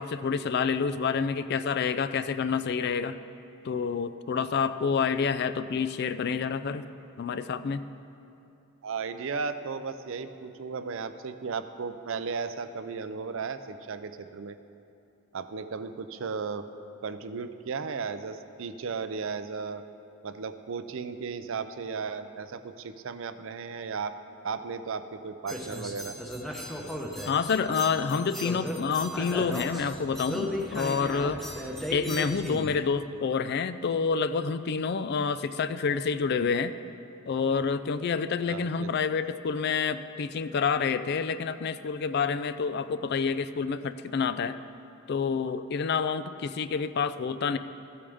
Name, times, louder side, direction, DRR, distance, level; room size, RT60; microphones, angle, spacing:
voice 1, 0.0-3.2 3.6-6.8 7.2-7.8 27.3-31.4 31.9-36.7 37.3-44.6 45.1-47.6, left 5 dB, 50° left, 13 dB, 0.3 m, -28 dB
voice 2, 8.8-14.6 15.3-16.7 17.0-19.8 20.2-24.1 24.4-26.2 38.5-38.9, right 5 dB, 60° right, 11 dB, 0.5 m, -35 dB
sound 1, 25.5-32.7, equal, ahead, 0.8 m, -36 dB
15.0 x 8.6 x 3.5 m, 2.7 s
head